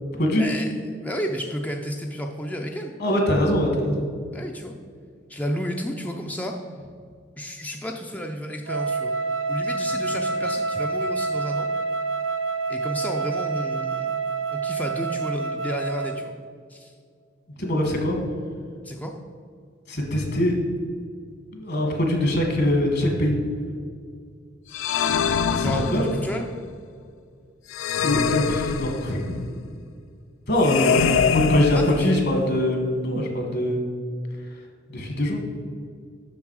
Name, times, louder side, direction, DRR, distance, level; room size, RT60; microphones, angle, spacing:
voice 1, 0.4-0.7 1.0-2.9 4.3-4.7 5.3-6.5 7.4-9.2 9.5-11.7 12.7-14.2 14.5-16.4 16.7-16.9 18.8-19.1 25.6-26.4 30.7-32.1, equal, 10° left, 2 dB, 0.4 m, -31 dB
voice 2, 3.0-4.0 17.6-18.2 19.9-20.6 21.5-23.4 25.5-26.1 28.0-29.4 30.5-33.8 34.9-35.4, left 1 dB, 55° left, 2 dB, 1.7 m, -23 dB
Wind instrument woodwind instrument, 8.7-16.3, right 4 dB, 80° right, 0.5 m, -27 dB
sound 1, 24.7-26.4 27.7-29.4 30.6-32.4, left 7 dB, 90° left, 0.4 m, -24 dB
7.1 x 6.3 x 4.8 m, 2.2 s
head